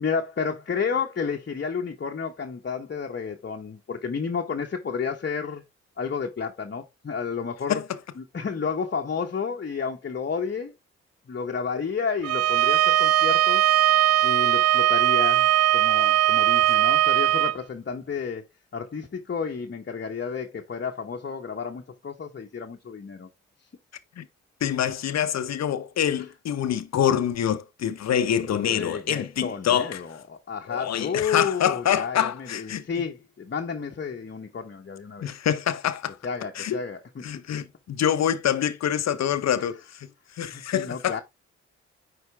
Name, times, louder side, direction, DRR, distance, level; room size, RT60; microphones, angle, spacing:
voice 1, 0.0-5.6 6.0-7.8 8.2-10.7 11.3-13.7 14.2-18.4 18.7-23.3 28.6-35.3 36.2-37.2 39.6-39.7 40.5-41.2, left 6 dB, 40° left, 1.1 m, -31 dB
Bowed string instrument, 12.2-17.6, right 13 dB, 55° right, 0.4 m, -20 dB
voice 2, 24.6-30.0 30.7-32.8 35.2-36.2 36.5-36.8 37.2-40.1 40.4-41.2, left 9 dB, 60° left, 0.9 m, -26 dB
9.6 x 4.5 x 3.3 m
hypercardioid pair, 40°, 30 cm